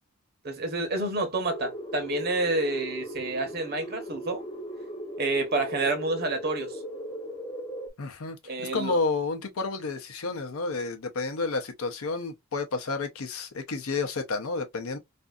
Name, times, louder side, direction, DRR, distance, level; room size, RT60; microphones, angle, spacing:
voice 1, 0.4-4.4 5.2-6.7 8.5-9.0, right 2 dB, 45° right, 0.8 m, -29 dB
sound 1, 1.5-7.9, equal, 20° left, 0.6 m, -38 dB
voice 2, 8.0-15.0, left 3 dB, 70° left, 0.6 m, -31 dB
2.6 x 2.5 x 2.3 m
head